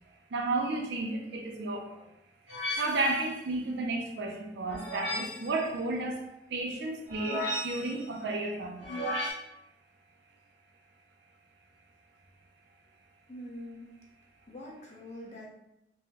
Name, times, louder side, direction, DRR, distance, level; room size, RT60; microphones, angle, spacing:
voice 1, 0.3-2.1 2.8-6.2 6.5-9.1, right 2 dB, 70° right, 2 dB, 0.5 m, -32 dB
sound 1, 2.5-3.3 4.7-5.5 7.1-8.0 8.8-9.3, left 1 dB, 80° left, 1.0 m, -34 dB
voice 2, 13.3-13.9 14.5-15.5, left 1 dB, 45° left, -1 dB, 0.7 m, -44 dB
3.2 x 2.2 x 2.8 m, 0.85 s
head